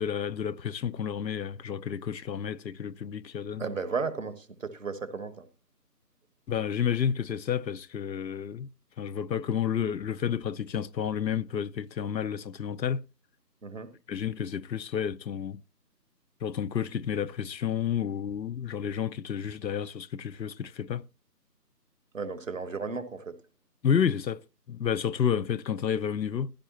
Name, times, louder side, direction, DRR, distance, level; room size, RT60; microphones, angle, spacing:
voice 1, 0.0-3.6 6.5-8.7 9.0-13.0 14.1-15.6 16.4-21.0 23.8-24.4 24.7-26.5, left 8 dB, 85° left, 0.7 m, -30 dB
voice 2, 3.6-5.4 13.6-13.9 22.1-23.4, right 4 dB, 50° right, 1.4 m, -34 dB
15.5 x 11.5 x 2.9 m
figure-of-eight pair, 170°, 50 cm